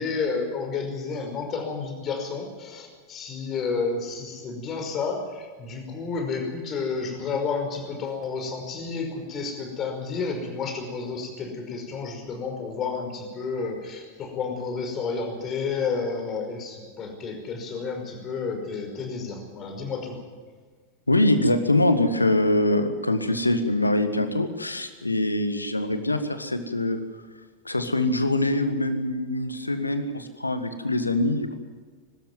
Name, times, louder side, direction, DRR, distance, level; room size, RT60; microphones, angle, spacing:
voice 1, 0.0-20.2, left 4 dB, 30° left, 4 dB, 5.4 m, -31 dB
voice 2, 21.1-27.0 27.6-31.6, left 1 dB, 85° left, 10 dB, 1.6 m, -24 dB
23.0 x 13.0 x 9.5 m, 1.4 s
figure-of-eight pair, 90°, 0 cm